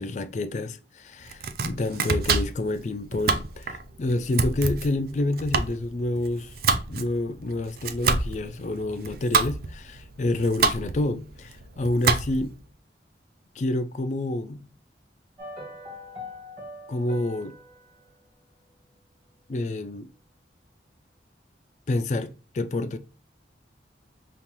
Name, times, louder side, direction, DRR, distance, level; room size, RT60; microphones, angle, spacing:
voice 1, 0.0-6.5 6.9-12.5 13.6-14.6 16.9-17.6 19.5-20.1 21.9-23.0, left 2 dB, 40° left, 0.4 m, -28 dB
Domestic sounds home sounds, 1.2-12.6, right 4 dB, 55° right, 0.4 m, -28 dB
sound 1, 15.4-19.7 19.9-20.0, left 2 dB, 35° right, 1.8 m, -44 dB
5.3 x 2.5 x 2.9 m
head